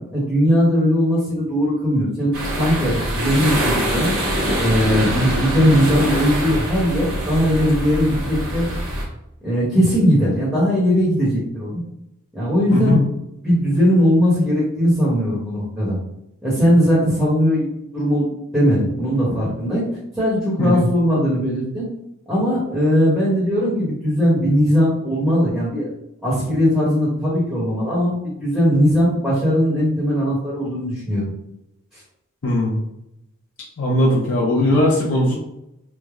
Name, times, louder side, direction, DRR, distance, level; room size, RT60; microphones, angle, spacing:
voice 1, 0.1-4.1 4.6-8.7 9.4-11.8 12.3-13.0 13.4-16.0 16.4-17.7 17.9-18.3 18.5-19.8 20.1-21.9 22.3-25.9 26.2-31.3, equal, 5° right, -9 dB, 1.0 m, -19 dB
sound 1, 2.3-9.0, right 1 dB, 65° right, 1.2 m, -24 dB
voice 2, 12.7-13.1 20.6-20.8 32.4-32.8 33.8-35.4, left 1 dB, 75° left, -4 dB, 0.7 m, -19 dB
3.4 x 2.1 x 3.5 m, 0.84 s
head